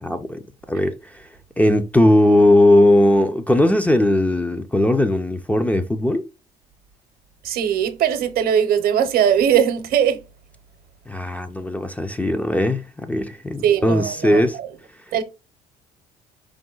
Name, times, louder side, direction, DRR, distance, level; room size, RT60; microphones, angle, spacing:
voice 1, 0.0-0.4 0.7-1.2 1.6-6.2 11.1-14.6, left 1 dB, 10° left, 0.4 m, -18 dB
voice 2, 7.4-10.2 13.6-14.7 15.1-15.2, right 9 dB, 65° right, 0.7 m, -20 dB
4.8 x 2.1 x 3.8 m
cardioid pair, 110°, 17 cm